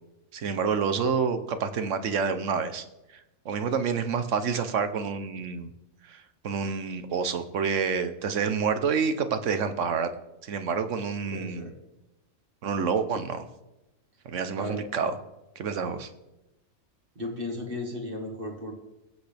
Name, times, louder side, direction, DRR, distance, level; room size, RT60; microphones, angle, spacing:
voice 1, 0.3-2.8 3.4-5.7 6.0-10.1 10.4-11.7 12.6-13.4 14.2-15.1 15.6-16.1, right 6 dB, 65° right, 10 dB, 1.2 m, -28 dB
voice 2, 11.3-11.7 14.6-14.8 17.2-18.7, left 1 dB, 40° right, 1 dB, 2.0 m, -35 dB
22.0 x 8.1 x 3.4 m, 0.98 s
omnidirectional pair, 1.4 m